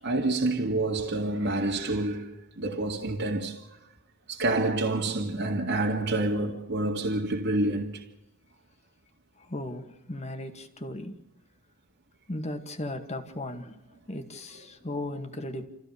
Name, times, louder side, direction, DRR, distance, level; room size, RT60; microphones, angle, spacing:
voice 1, 0.0-3.8 4.3-8.1, right 2 dB, 60° right, 2.1 m, -28 dB
voice 2, 9.4-11.2 12.3-13.8 14.1-15.7, left 1 dB, 35° left, 2.0 m, -36 dB
28.5 x 15.5 x 6.9 m
head